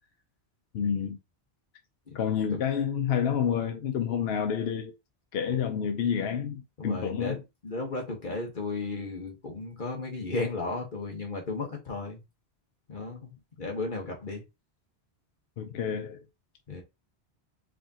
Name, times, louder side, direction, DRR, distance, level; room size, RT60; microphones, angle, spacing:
voice 1, 0.7-1.2 2.1-4.9 5.3-7.4 15.6-16.2, left 8 dB, 70° left, 0.9 m, -29 dB
voice 2, 6.8-7.4 7.6-12.2 12.9-13.3 13.6-14.4 16.7-16.8, left 3 dB, 50° left, 1.4 m, -34 dB
4.9 x 3.6 x 2.8 m
omnidirectional pair, 1.1 m